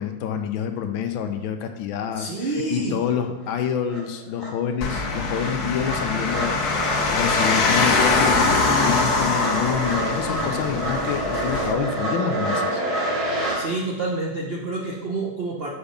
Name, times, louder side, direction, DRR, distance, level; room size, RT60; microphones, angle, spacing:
voice 1, 0.0-12.8, left 8 dB, 75° left, 6 dB, 1.4 m, -27 dB
voice 2, 2.2-3.0 13.5-15.7, right 2 dB, 75° right, -2 dB, 0.5 m, -28 dB
sound 1, 3.5-3.6 3.9-13.6, right 1 dB, 45° right, 3.0 m, -28 dB
sound 2, 4.8-11.7, left 4 dB, 55° left, 1.2 m, -23 dB
7.0 x 4.9 x 5.2 m, 1.0 s
omnidirectional pair, 2.3 m